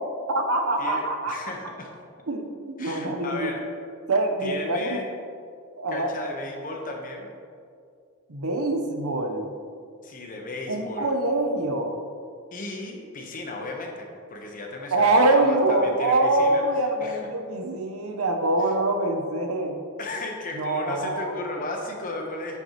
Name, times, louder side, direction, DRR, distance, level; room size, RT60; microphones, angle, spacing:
voice 1, 0.3-1.4 2.3-3.5 4.1-5.0 5.8-6.1 8.3-9.5 10.7-12.0 14.9-19.8 20.5-21.3, right 2 dB, 80° right, 4 dB, 0.8 m, -24 dB
voice 2, 0.8-1.9 2.8-3.6 4.4-5.1 5.9-7.3 10.0-11.1 12.5-17.3 18.6-18.7 20.0-22.6, left 2 dB, 40° left, 1 dB, 0.9 m, -35 dB
9.3 x 5.8 x 2.9 m, 2.3 s
head